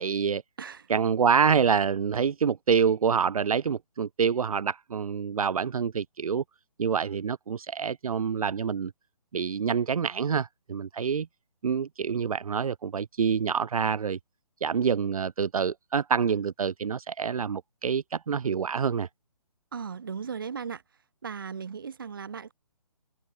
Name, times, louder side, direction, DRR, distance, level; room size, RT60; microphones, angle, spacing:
voice 1, 0.0-0.4 0.9-6.4 6.8-8.9 9.3-11.3 11.6-14.2 14.6-19.1, right 6 dB, 70° right, 0.6 m, -26 dB
voice 2, 19.7-20.8 21.2-22.5, right 6 dB, 35° right, 1.7 m, -36 dB
open air
hypercardioid pair, 180°, 19 cm